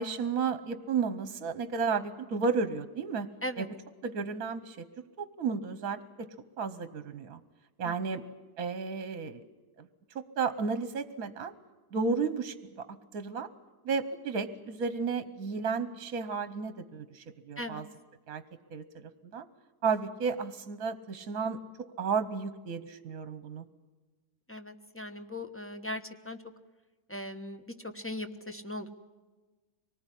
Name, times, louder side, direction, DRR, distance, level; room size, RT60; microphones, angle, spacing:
voice 1, 0.0-3.3 3.6-3.7 4.0-4.8 5.2-6.3 6.6-7.4 7.8-8.2 8.6-9.4 9.8-11.5 11.9-13.5 13.8-17.9 18.3-18.4 18.7-19.5 19.8-21.6 22.0-23.6, right 5 dB, 65° right, 12 dB, 1.4 m, -33 dB
voice 2, 7.8-8.2 17.6-17.8 24.5-26.4 27.1-28.9, left 1 dB, 10° left, 8 dB, 1.0 m, -39 dB
25.0 x 19.5 x 10.0 m, 1.3 s
omnidirectional pair, 1.7 m